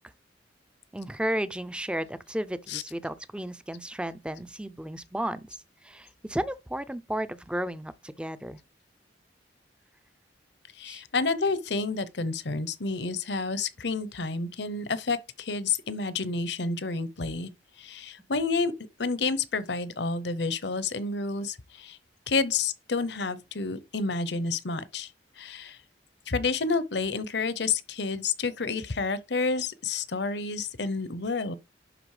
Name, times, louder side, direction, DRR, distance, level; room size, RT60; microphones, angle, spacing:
voice 1, 0.9-8.6 10.8-11.0, right 1 dB, 5° right, 0.5 m, -33 dB
voice 2, 10.8-17.5 17.8-18.7 19.0-22.0 22.3-25.1 25.4-25.8 26.3-31.6, left 4 dB, 65° left, 0.9 m, -29 dB
11.0 x 4.1 x 4.9 m
head